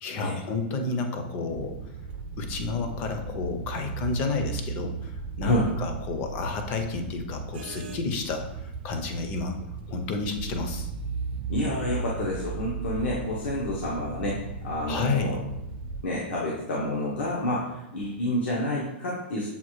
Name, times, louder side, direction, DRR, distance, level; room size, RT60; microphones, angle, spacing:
voice 1, 0.0-1.7 2.4-9.6 9.9-10.9 14.9-15.4, left 4 dB, 25° left, 5 dB, 0.4 m, -31 dB
sound 1, 1.5-16.0, right 5 dB, 60° right, 0.4 m, -36 dB
voice 2, 11.5-15.4 16.0-19.5, left 1 dB, 80° left, -5 dB, 0.9 m, -29 dB
6.9 x 2.4 x 3.0 m, 0.87 s
supercardioid pair, 175°, 6 cm